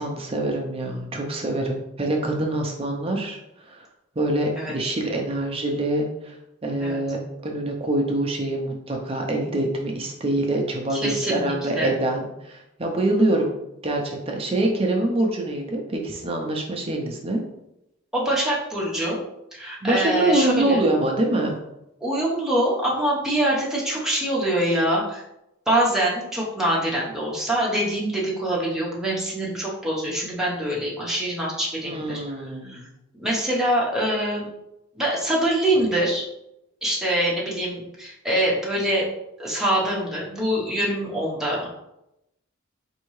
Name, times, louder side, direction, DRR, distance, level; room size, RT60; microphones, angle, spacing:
voice 1, 0.0-3.4 3.7-3.9 4.2-6.4 6.6-13.5 13.8-17.4 19.8-21.5 31.8-32.9, right 1 dB, 25° right, 1 dB, 0.5 m, -25 dB
voice 2, 10.9-11.9 18.1-19.2 19.5-20.8 22.0-25.2 25.7-32.8 33.2-34.5 35.0-36.2 36.8-39.1 39.4-41.7, right 1 dB, 5° right, -5 dB, 0.9 m, -24 dB
4.4 x 2.7 x 3.1 m, 0.86 s
head